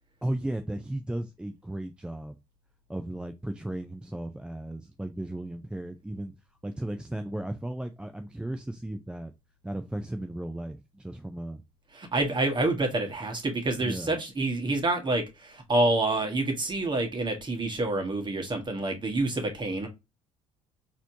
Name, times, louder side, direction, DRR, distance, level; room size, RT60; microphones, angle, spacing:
voice 1, 0.2-2.4 2.9-6.3 6.6-9.3 9.6-11.6 13.8-14.2, right 1 dB, 5° right, 0.4 m, -35 dB
voice 2, 11.9-19.9, right 2 dB, 30° right, 1.4 m, -27 dB
4.1 x 2.9 x 2.7 m
hypercardioid pair, 55°, 17 cm